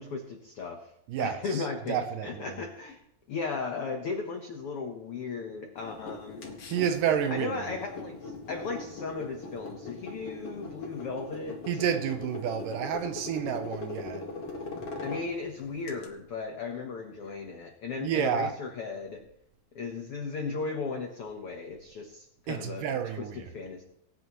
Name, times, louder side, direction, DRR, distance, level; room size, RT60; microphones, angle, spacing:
voice 1, 0.0-0.9 1.2-3.0 3.3-6.4 7.3-11.8 15.0-19.2 19.7-22.9 23.2-23.8, left 4 dB, 85° left, 1.2 m, -36 dB
voice 2, 1.1-2.6 6.7-7.6 11.7-14.3 18.0-18.6 22.5-23.5, right 8 dB, 75° right, 2.1 m, -30 dB
sound 1, 5.8-16.1, left 3 dB, 50° left, 2.2 m, -40 dB
20.0 x 9.7 x 3.1 m
omnidirectional pair, 4.3 m